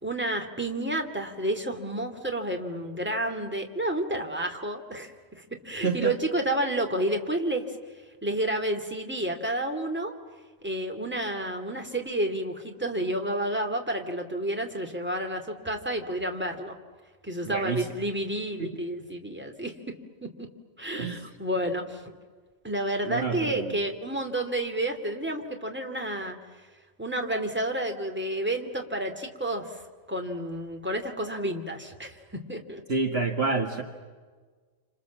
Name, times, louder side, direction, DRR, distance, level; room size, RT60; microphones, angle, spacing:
voice 1, 0.0-7.7 8.2-10.2 10.6-16.8 17.2-19.9 20.2-20.5 20.8-22.0 22.6-26.4 27.0-29.8 30.1-32.2 32.5-32.8, right 1 dB, 10° right, 4 dB, 2.6 m, -30 dB
voice 2, 5.8-6.2 17.5-17.9 18.6-18.8 20.9-21.2 23.0-23.8 32.9-33.8, right 4 dB, 50° right, 4 dB, 1.9 m, -28 dB
29.0 x 27.5 x 7.5 m, 1.5 s
omnidirectional pair, 1.4 m